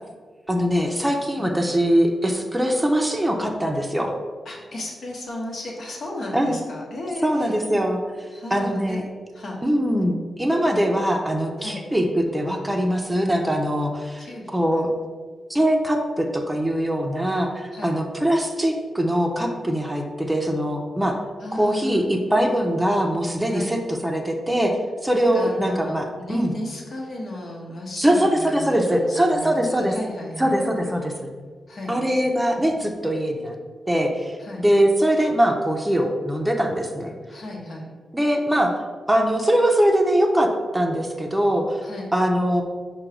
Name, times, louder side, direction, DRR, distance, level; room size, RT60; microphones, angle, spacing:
voice 1, 0.5-4.1 6.3-6.5 7.2-8.0 8.5-9.0 9.6-14.9 15.5-21.2 21.5-26.5 28.0-29.9 30.4-31.3 31.9-33.6 33.9-37.1 38.1-38.8 39.1-41.8 42.1-42.6, equal, 10° right, 2 dB, 0.6 m, -22 dB
voice 2, 4.4-7.6 8.3-9.0 9.3-9.6 11.6-11.8 14.2-14.6 17.7-18.0 21.4-22.1 23.5-23.8 25.1-30.5 31.7-32.0 34.4-34.6 37.3-37.9 41.8-42.1, left 1 dB, 65° left, -2 dB, 1.1 m, -34 dB
4.6 x 2.3 x 4.8 m, 1.5 s
cardioid pair, 55°, 0 cm